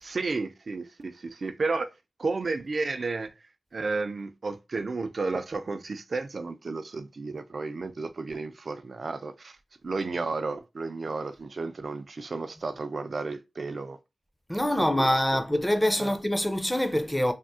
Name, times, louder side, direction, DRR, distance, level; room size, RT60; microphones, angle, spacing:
voice 1, 0.0-1.9 2.2-3.3 3.7-9.6 9.8-14.0 14.7-15.1 16.0-16.2, right 3 dB, 65° right, 0.4 m, -32 dB
voice 2, 14.5-17.3, left 1 dB, 10° left, 0.5 m, -25 dB
3.4 x 2.0 x 2.6 m
wide cardioid pair, 70°, 0 cm